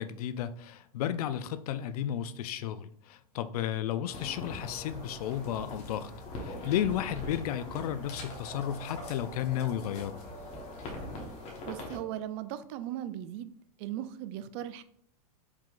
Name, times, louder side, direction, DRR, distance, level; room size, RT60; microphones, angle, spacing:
voice 1, 0.0-10.2, left 10 dB, 70° left, 12 dB, 0.4 m, -33 dB
sound 1, 4.1-12.0, left 2 dB, 35° left, 1.1 m, -42 dB
voice 2, 11.7-13.5 13.8-14.8, right 12 dB, 45° right, 12 dB, 0.4 m, -38 dB
4.8 x 3.7 x 2.4 m, 0.62 s
hypercardioid pair, 130°, 20 cm